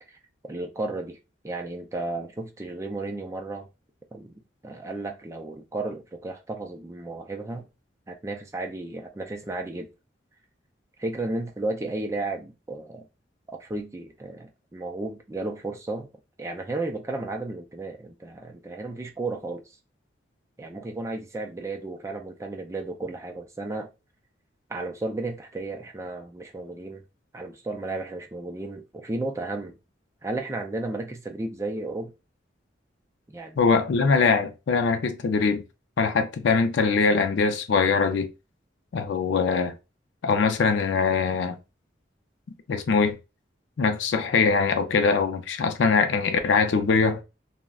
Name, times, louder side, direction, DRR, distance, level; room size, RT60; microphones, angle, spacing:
voice 1, 0.4-1.2 1.4-3.7 4.1-4.3 4.6-7.7 8.1-9.9 11.0-13.1 13.6-16.1 16.4-19.6 20.6-23.9 24.7-27.0 27.3-29.7 30.2-32.1 33.3-33.6, right 2 dB, 15° right, 0.3 m, -33 dB
voice 2, 33.6-35.6 36.0-38.3 38.9-39.7 40.2-41.6 42.7-43.2 43.8-47.2, left 5 dB, 75° left, 0.4 m, -22 dB
2.3 x 2.1 x 3.5 m
head